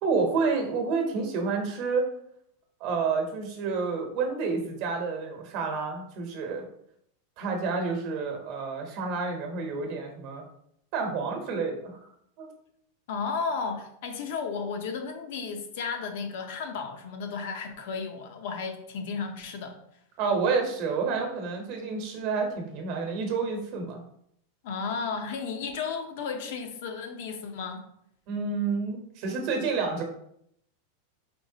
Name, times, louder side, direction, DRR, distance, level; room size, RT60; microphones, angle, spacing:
voice 1, 0.0-2.1 2.8-6.6 7.4-10.4 10.9-12.0 12.4-12.5 20.2-24.0 28.3-30.0, right 4 dB, 50° right, 3 dB, 1.0 m, -29 dB
voice 2, 13.1-19.8 24.6-27.8, left 5 dB, 65° left, 5 dB, 0.7 m, -33 dB
4.4 x 3.2 x 2.8 m, 0.72 s
supercardioid pair, 145°, 0 cm